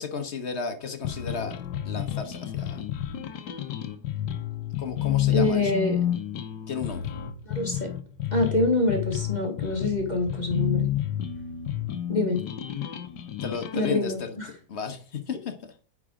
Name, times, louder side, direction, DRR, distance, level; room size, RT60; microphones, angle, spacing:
voice 1, 0.0-2.8 4.8-5.7 6.7-7.1 13.4-14.4 14.7-15.7, left 5 dB, 45° left, 1.1 m, -34 dB
sound 1, 1.0-14.0, left 11 dB, 70° left, 1.3 m, -30 dB
voice 2, 5.3-6.0 7.5-7.9 8.3-10.9 12.1-12.4 13.7-14.5, left 2 dB, 25° left, 1.4 m, -25 dB
9.4 x 4.9 x 3.7 m
omnidirectional pair, 2.0 m